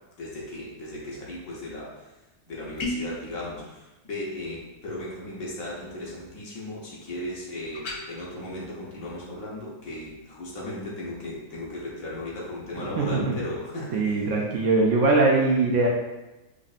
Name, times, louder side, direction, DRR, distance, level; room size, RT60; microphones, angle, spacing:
voice 1, 0.2-2.0 2.5-14.2, left 1 dB, 70° left, -5 dB, 1.3 m, -36 dB
sound 1, 2.8-3.2 7.7-8.0, left 1 dB, 90° left, 1.3 m, -31 dB
voice 2, 12.8-13.4 13.9-15.9, right 3 dB, 65° right, -2 dB, 0.8 m, -22 dB
5.1 x 2.6 x 2.4 m, 1.0 s
omnidirectional pair, 1.5 m